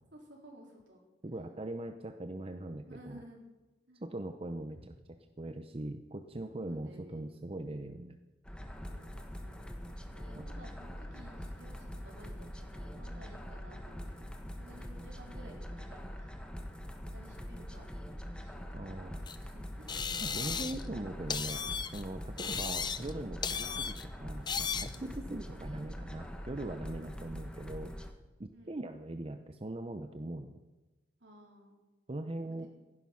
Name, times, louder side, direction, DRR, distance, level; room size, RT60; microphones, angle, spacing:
voice 1, 0.1-1.0 1.3-1.5 2.9-3.5 3.9-4.0 4.7-4.8 6.5-7.2 8.9-9.6 10.1-16.3 17.0-19.9 22.4-22.7 24.9-25.4 27.0-27.7 28.5-28.8 31.2-31.8 32.4-32.7, equal, 70° right, 0 dB, 3.9 m, -55 dB
voice 2, 1.2-3.2 4.0-4.8 5.4-8.2 10.4-10.5 18.7-19.2 20.2-21.6 21.9-27.9 28.4-30.6 32.1-32.7, right 1 dB, 30° right, 7 dB, 0.7 m, -41 dB
sound 1, 8.4-28.1, equal, 5° left, 1.2 m, -44 dB
sound 2, 19.3-19.4 19.9-20.9 21.3-22.0 22.4-23.1 23.4-24.0 24.5-25.0, left 6 dB, 25° left, 0.6 m, -35 dB
16.0 x 11.0 x 5.9 m, 1.2 s
head